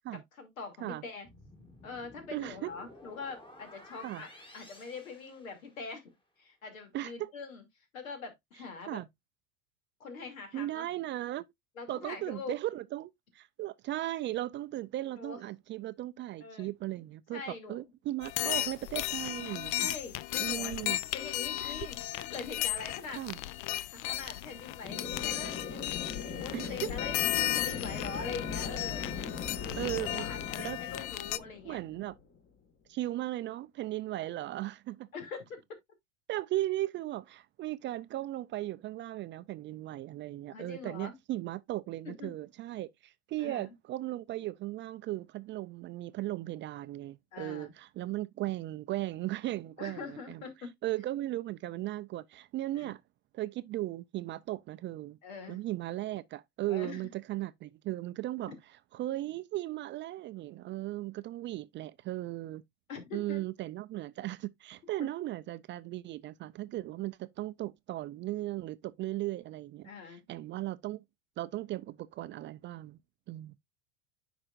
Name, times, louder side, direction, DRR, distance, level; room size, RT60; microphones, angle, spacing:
voice 1, 0.1-1.3 1.8-6.1 6.4-7.6 7.9-9.0 10.0-10.9 11.8-12.5 15.1-15.4 16.4-16.7 17.3-17.8 18.4-18.7 19.7-22.0 22.3-23.2 23.9-25.9 26.4-27.2 27.5-29.0 29.6-29.8 30.2-31.8 35.1-35.6 40.5-41.2 42.0-42.3 43.4-43.7 47.3-47.7 49.8-50.7 52.7-52.9 55.2-55.6 56.7-57.0 62.9-63.4 65.0-65.1 69.8-70.2, left 4 dB, 85° left, 2.7 m, -43 dB
sound 1, 1.3-6.0, left 1 dB, 10° left, 1.8 m, -54 dB
voice 2, 2.3-2.7 4.0-4.2 6.9-7.3 8.9-9.1 10.5-11.4 11.9-19.9 20.4-21.0 21.6-21.7 23.2-23.4 26.5-26.9 29.8-30.3 30.6-30.8 31.6-32.1 32.9-35.1 36.3-50.4 50.8-53.0 53.3-55.2 55.5-58.5 58.9-62.6 63.1-71.0 71.4-73.0 73.3-73.6, right 15 dB, 30° right, 0.3 m, -37 dB
sound 2, 18.2-31.4, left 15 dB, 55° left, 0.6 m, -35 dB
sound 3, 24.8-32.4, left 5 dB, 30° left, 1.7 m, -40 dB
9.6 x 5.1 x 2.5 m
hypercardioid pair, 95°, 40 cm